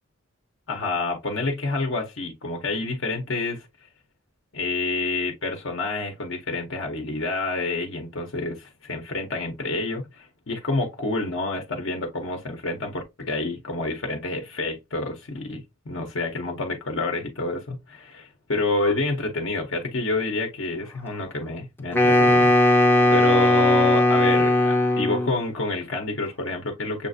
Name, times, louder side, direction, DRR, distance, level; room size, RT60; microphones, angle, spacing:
voice 1, 0.7-3.7 4.5-27.1, left 3 dB, 55° left, 0.7 m, -28 dB
Wind instrument woodwind instrument, 21.9-25.4, left 1 dB, 10° left, 0.5 m, -18 dB
6.7 x 2.4 x 2.6 m
head